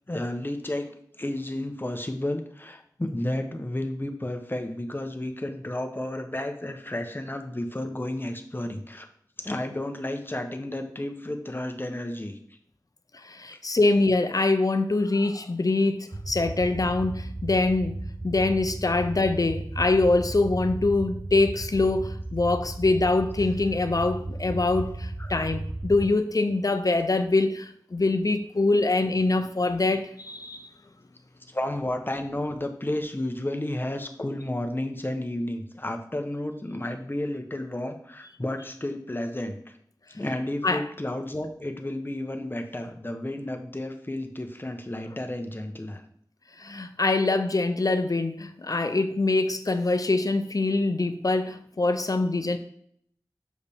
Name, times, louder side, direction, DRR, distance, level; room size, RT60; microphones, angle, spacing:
voice 1, 0.1-0.9 1.2-9.1 9.4-12.4 13.5-13.6 25.2-25.3 31.5-39.7 40.1-46.0, left 1 dB, 30° left, 5 dB, 0.9 m, -32 dB
voice 2, 13.1-30.7 40.6-40.8 46.6-52.6, left 2 dB, 55° left, 9 dB, 0.6 m, -24 dB
sound 1, 16.1-26.1, right 2 dB, 35° right, 0.6 m, -35 dB
6.8 x 4.8 x 3.5 m, 0.66 s
wide cardioid pair, 55°, 8 cm